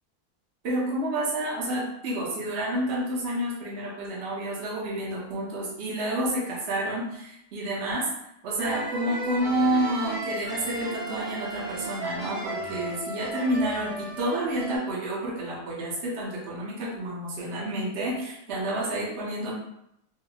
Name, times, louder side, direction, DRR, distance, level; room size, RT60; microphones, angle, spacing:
voice 1, 0.6-8.1 8.4-19.6, right 1 dB, 55° right, -4 dB, 1.0 m, -29 dB
sound 1, 8.6-14.8, right 1 dB, 30° right, 0.6 m, -35 dB
3.8 x 2.1 x 2.8 m, 0.79 s
omnidirectional pair, 1.6 m